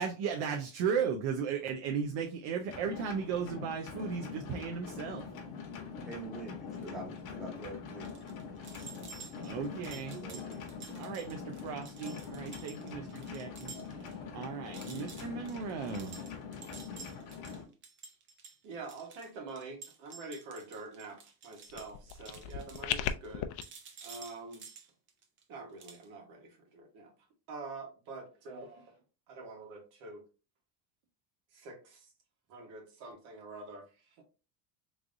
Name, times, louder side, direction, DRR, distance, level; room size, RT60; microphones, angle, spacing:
voice 1, 0.0-5.2 9.4-10.4 11.0-13.7 14.0-16.2, right 6 dB, 65° right, 3 dB, 0.7 m, -36 dB
sound 1, 2.7-17.6, left 6 dB, 45° left, 1.0 m, -43 dB
voice 2, 6.1-8.3 10.1-11.0, right 3 dB, ahead, -3 dB, 0.8 m, -46 dB
sound 2, 8.0-14.1 14.4-14.5 14.7-23.3 23.6-25.4 25.8-26.0, right 5 dB, 25° right, 0.4 m, -51 dB
voice 3, 18.6-23.5 24.0-24.6 25.5-27.1 27.5-29.0 29.3-30.2 31.5-32.1 32.5-34.2, right 3 dB, 90° right, 2 dB, 1.5 m, -46 dB
sound 3, 21.7-23.6, left 11 dB, 65° left, 0.5 m, -36 dB
3.7 x 3.2 x 2.6 m, 0.32 s
cardioid pair, 175°, 47 cm